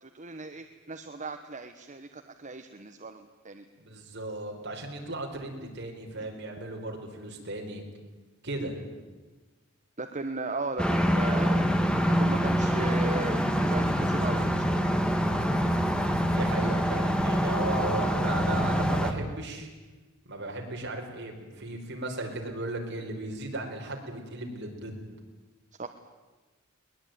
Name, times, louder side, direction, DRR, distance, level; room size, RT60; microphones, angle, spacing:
voice 1, 0.0-3.6 6.2-6.3 10.0-14.8 25.8-25.9, right 3 dB, 35° right, 6 dB, 1.2 m, -37 dB
voice 2, 3.8-7.8 8.4-8.8 16.2-19.7 20.2-25.0, right 2 dB, 55° right, 1 dB, 4.9 m, -36 dB
sound 1, 10.8-19.1, equal, 5° left, 1.7 m, -25 dB
21.5 x 20.0 x 9.4 m, 1.3 s
head